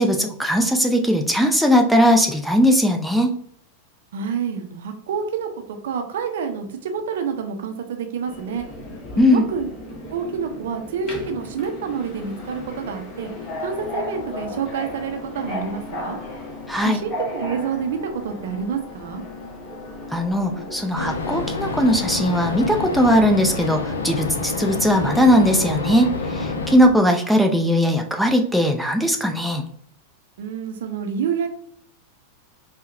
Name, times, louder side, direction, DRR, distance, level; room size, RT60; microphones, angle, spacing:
voice 1, 0.0-3.3 9.2-9.4 16.7-17.0 20.1-29.7, equal, ahead, 2 dB, 0.4 m, -19 dB
voice 2, 4.1-8.7 9.3-9.7 10.1-13.3 13.6-16.2 16.8-19.2 30.4-31.5, right 6 dB, 60° right, 5 dB, 0.5 m, -28 dB
Subway metro underground, 8.3-27.0, left 2 dB, 30° left, 1.0 m, -36 dB
sound 1, 20.9-26.8, left 3 dB, 70° left, 0.4 m, -28 dB
4.4 x 2.1 x 2.5 m, 0.63 s
figure-of-eight pair, 90°, 0 cm